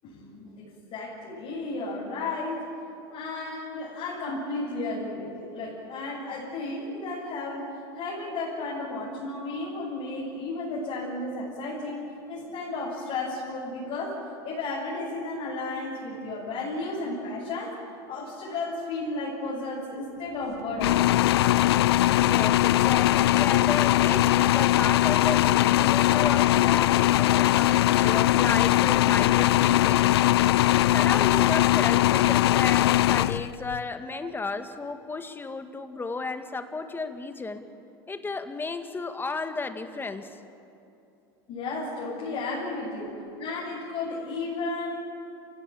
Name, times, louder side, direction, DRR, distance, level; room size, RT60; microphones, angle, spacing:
voice 1, 0.0-2.7 3.1-14.2 14.4-17.8 18.1-21.1 41.5-45.0, left 2 dB, 50° left, -6 dB, 7.4 m, -33 dB
sound 1, 20.8-33.8, left 15 dB, 80° left, 0.5 m, -21 dB
voice 2, 22.2-30.1 30.5-37.6 38.1-40.4, left 3 dB, 15° left, 8 dB, 2.0 m, -33 dB
28.5 x 17.0 x 8.8 m, 2.8 s
hypercardioid pair, 95°, 13 cm